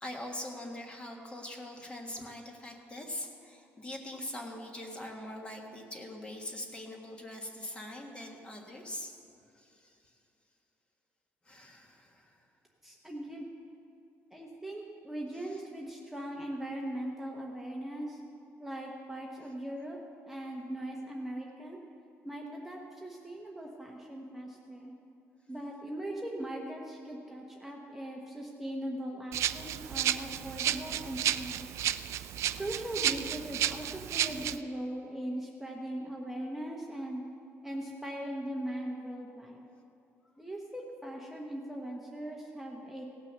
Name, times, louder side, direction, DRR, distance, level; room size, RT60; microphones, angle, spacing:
voice 1, 0.0-9.1 9.5-10.1 11.4-12.4, left 1 dB, 20° left, 2 dB, 1.5 m, -42 dB
voice 2, 12.8-13.5 14.3-18.2 18.6-20.0 20.3-21.8 22.2-24.9 25.5-31.7 32.5-37.2 37.6-39.7 40.4-43.0, right 1 dB, 5° right, -2 dB, 1.0 m, -40 dB
Rattle (instrument), 29.3-34.6, right 11 dB, 65° right, 0.4 m, -32 dB
17.5 x 6.1 x 6.7 m, 2.7 s
cardioid pair, 140°, 5 cm